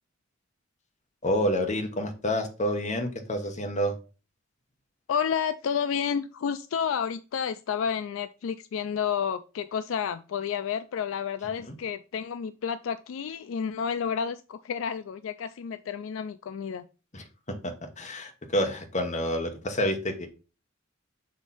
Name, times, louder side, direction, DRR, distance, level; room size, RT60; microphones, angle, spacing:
voice 1, 1.2-4.0 17.1-20.3, equal, 35° left, 4 dB, 1.2 m, -29 dB
voice 2, 5.1-16.9, left 7 dB, 75° left, 12 dB, 0.3 m, -30 dB
6.3 x 3.0 x 5.4 m, 0.33 s
head